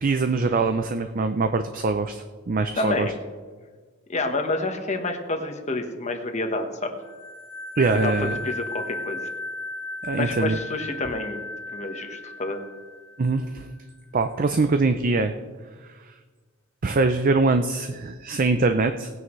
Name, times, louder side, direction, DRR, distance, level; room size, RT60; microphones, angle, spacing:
voice 1, 0.0-3.1 7.8-8.3 10.0-10.6 13.2-13.7 14.1-15.3 16.8-19.1, right 3 dB, 40° right, 8 dB, 0.5 m, -23 dB
voice 2, 2.8-3.1 4.1-6.9 8.0-9.3 10.2-11.4 11.7-12.6, left 2 dB, 35° left, 5 dB, 1.2 m, -28 dB
sound 1, 7.0-13.5, left 2 dB, 10° left, 1.4 m, -35 dB
18.5 x 9.5 x 3.2 m, 1.5 s
head